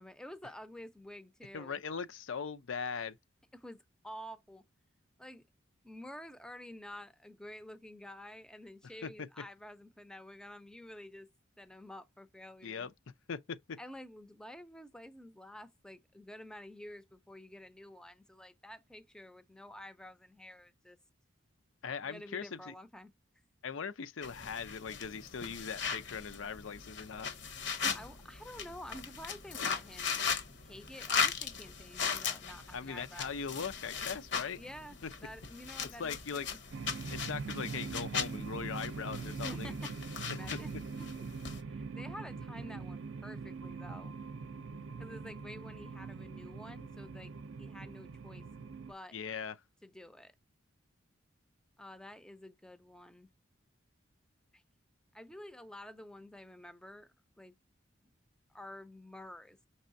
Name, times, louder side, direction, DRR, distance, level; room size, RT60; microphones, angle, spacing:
voice 1, 0.0-1.8 3.5-4.6 5.2-5.4 5.8-11.3 11.6-12.9 13.8-21.0 22.0-23.1 27.9-30.2 30.6-33.3 34.5-36.6 39.4-41.3 41.7-44.1 45.0-47.3 47.6-48.4 48.9-49.2 49.8-50.3 51.8-53.3 54.5-54.6 55.1-57.5 58.5-59.6, equal, 5° left, 0.5 m, -50 dB
voice 2, 1.5-3.2 9.0-9.1 12.6-12.9 13.3-13.8 21.8-22.7 23.6-27.3 32.7-34.6 35.0-35.1 36.0-36.5 37.1-39.7 40.3-40.6 49.1-49.6, left 6 dB, 80° left, 0.5 m, -40 dB
sound 1, 24.2-41.6, left 6 dB, 60° left, 0.9 m, -38 dB
sound 2, 36.7-48.9, right 4 dB, 65° right, 0.5 m, -42 dB
5.4 x 3.3 x 2.6 m
head